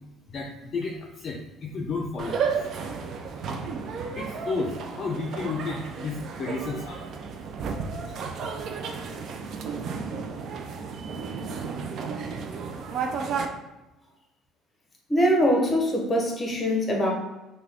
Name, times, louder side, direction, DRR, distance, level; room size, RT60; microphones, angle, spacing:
voice 1, 0.3-2.4 4.2-7.0 7.9-8.8, left 3 dB, 40° left, -1 dB, 0.5 m, -33 dB
sound 1, 2.2-13.5, right 5 dB, 55° right, 0.4 m, -33 dB
voice 2, 15.1-17.1, equal, 20° left, 0 dB, 0.9 m, -23 dB
3.6 x 2.3 x 3.4 m, 1.0 s
cardioid pair, 110°, 0 cm